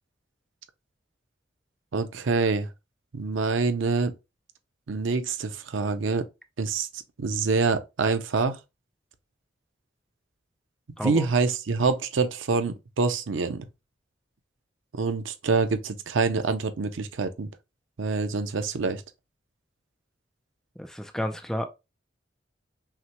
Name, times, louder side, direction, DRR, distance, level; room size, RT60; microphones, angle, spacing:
voice 1, 1.9-2.7 3.1-4.1 4.9-6.2 6.6-6.9 7.2-8.6 11.0-13.6 14.9-17.5 18.0-19.0, right 4 dB, 85° right, 0.6 m, -26 dB
voice 2, 20.8-21.7, equal, ahead, 0.4 m, -31 dB
5.7 x 2.2 x 2.9 m
head